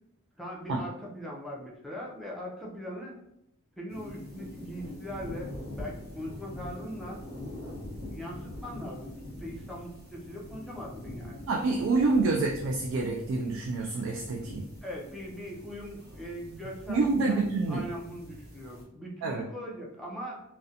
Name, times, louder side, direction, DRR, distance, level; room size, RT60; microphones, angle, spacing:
voice 1, 0.4-3.2 3.8-7.2 8.1-11.4 14.8-20.4, equal, ahead, -4 dB, 0.4 m, -40 dB
sound 1, 3.9-18.8, left 1 dB, 50° right, 0.9 m, -44 dB
voice 2, 11.5-14.6 16.9-17.8 19.2-19.4, right 3 dB, 65° right, 0 dB, 0.3 m, -27 dB
2.5 x 2.1 x 2.7 m, 0.81 s
head